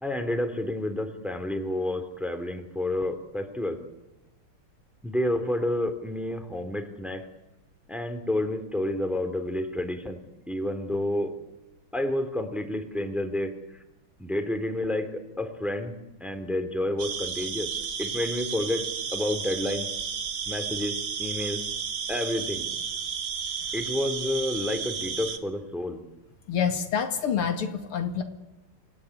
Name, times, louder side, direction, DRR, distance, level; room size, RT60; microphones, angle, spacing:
voice 1, 0.0-3.8 5.0-7.2 7.9-10.2 10.5-11.3 11.9-13.5 14.2-15.9 16.2-17.7 18.0-19.9 20.5-21.6 22.1-22.7 23.7-26.0, left 1 dB, ahead, 7 dB, 2.7 m, -29 dB
sound 1, 17.0-25.4, right 6 dB, 55° right, 2.3 m, -33 dB
voice 2, 26.5-28.2, left 7 dB, 80° left, 6 dB, 3.0 m, -27 dB
27.0 x 17.5 x 9.8 m, 0.99 s
omnidirectional pair, 2.4 m